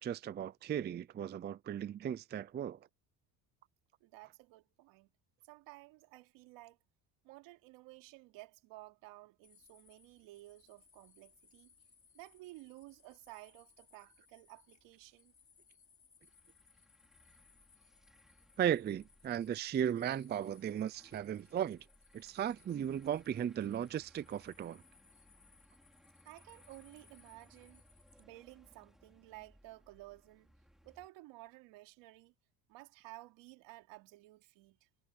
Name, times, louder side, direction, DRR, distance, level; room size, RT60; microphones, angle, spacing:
voice 1, 0.0-2.8 18.6-21.8 22.1-24.8, right 9 dB, 25° right, 0.4 m, -36 dB
voice 2, 4.0-5.1 5.5-6.8 7.2-11.7 12.1-15.3 26.2-27.8 28.2-30.5 30.8-32.3 32.7-34.9, right 19 dB, 85° right, 3.2 m, -54 dB
sound 1, 9.4-28.2, left 6 dB, 30° left, 5.0 m, -67 dB
sound 2, 16.2-31.1, equal, ahead, 5.5 m, -66 dB
cardioid pair, 115°, 43 cm